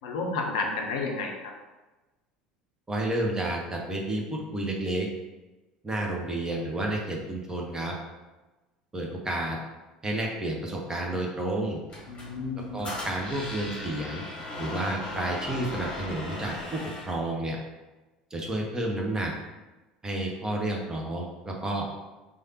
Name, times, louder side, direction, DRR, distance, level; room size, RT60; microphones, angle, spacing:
voice 1, 0.0-1.5 12.1-12.7, left 3 dB, 60° left, 2 dB, 0.5 m, -31 dB
voice 2, 2.9-5.1 5.8-7.9 8.9-9.6 10.0-11.8 12.7-14.2 14.6-17.6 18.3-19.3 20.0-21.8, right 1 dB, 15° right, -1 dB, 0.7 m, -30 dB
Squeak, 11.9-17.2, left 1 dB, 25° left, 1.2 m, -38 dB
3.3 x 2.3 x 2.8 m, 1.1 s
figure-of-eight pair, 70°, 4 cm